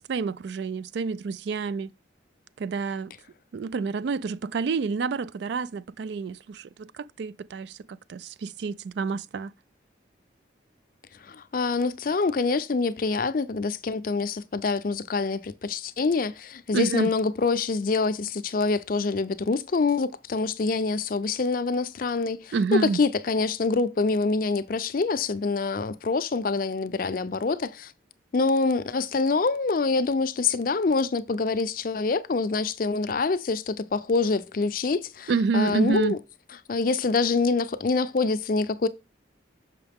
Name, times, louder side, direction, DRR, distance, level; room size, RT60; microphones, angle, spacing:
voice 1, 0.1-1.9 2.6-3.1 3.5-9.5 16.7-17.1 22.5-23.0 35.3-36.2, right 4 dB, 70° right, 0.3 m, -28 dB
voice 2, 11.2-27.9 28.3-36.2 36.7-38.9, left 4 dB, 50° left, 0.5 m, -26 dB
6.3 x 5.7 x 3.5 m
head